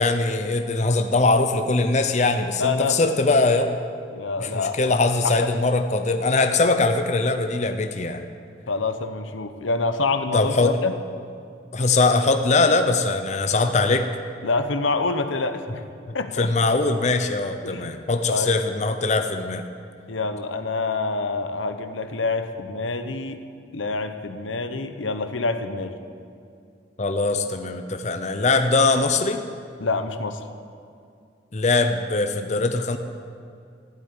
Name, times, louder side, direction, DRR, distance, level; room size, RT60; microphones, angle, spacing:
voice 1, 0.0-3.8 4.4-8.2 10.3-10.7 11.7-14.1 16.4-19.6 27.0-29.4 31.5-33.0, left 3 dB, 40° left, 7 dB, 0.7 m, -21 dB
voice 2, 2.6-3.0 4.1-4.8 8.7-10.9 14.4-15.9 16.1-16.5 17.6-17.9 18.3-18.6 20.1-23.4 23.7-26.0 29.8-30.4, left 3 dB, 85° left, 8 dB, 0.9 m, -26 dB
14.5 x 7.8 x 9.6 m, 2.4 s
head